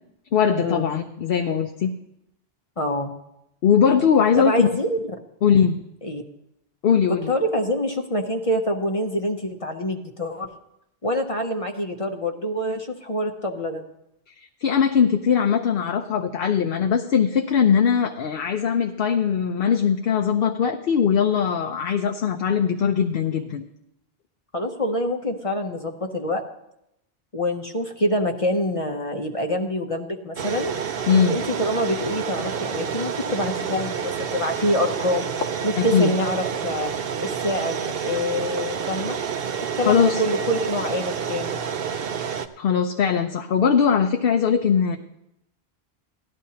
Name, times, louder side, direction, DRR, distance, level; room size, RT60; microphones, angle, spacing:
voice 1, 0.3-1.9 3.6-4.7 5.4-5.8 6.8-7.3 14.6-23.6 31.1-31.4 35.8-36.1 39.9-40.2 42.6-45.0, left 7 dB, 65° left, 5 dB, 0.8 m, -20 dB
voice 2, 2.8-3.1 4.4-5.0 6.0-6.2 7.1-10.5 11.0-13.8 24.5-26.4 27.3-30.7 31.2-35.3 35.6-36.9 37.2-39.3 39.6-41.6, left 1 dB, 35° left, 4 dB, 0.8 m, -26 dB
sound 1, 30.4-42.5, right 7 dB, 70° right, 0.8 m, -29 dB
17.5 x 12.0 x 2.8 m, 0.82 s
omnidirectional pair, 1.1 m